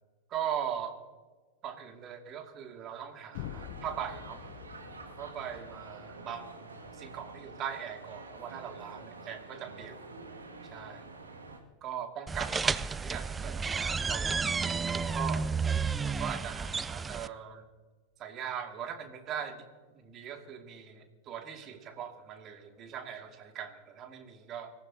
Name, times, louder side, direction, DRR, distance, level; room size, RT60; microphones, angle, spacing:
voice 1, 0.3-1.0 1.6-4.4 5.0-6.6 6.9-10.0 10.7-11.1 11.8-15.4 16.0-17.6 18.2-24.7, right 8 dB, 30° right, 4 dB, 2.3 m, -40 dB
sound 1, 3.3-7.3, left 15 dB, 45° left, 0.4 m, -47 dB
sound 2, 3.3-11.6, right 3 dB, 75° right, 2.1 m, -48 dB
sound 3, 12.3-17.3, right 5 dB, 15° right, 0.4 m, -31 dB
25.5 x 15.0 x 2.8 m, 1.4 s
figure-of-eight pair, 90°, 0 cm